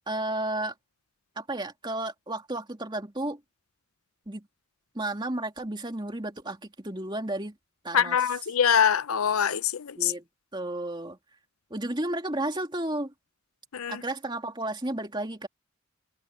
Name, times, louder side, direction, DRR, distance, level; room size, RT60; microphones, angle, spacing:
voice 1, 0.1-0.7 1.4-3.4 4.3-4.5 4.9-7.6 7.8-8.3 10.0-10.2 10.5-11.2 11.7-13.1 13.9-15.5, right 1 dB, 20° right, 2.7 m, -32 dB
voice 2, 7.9-10.1 13.7-14.0, left 8 dB, 85° left, 0.7 m, -24 dB
head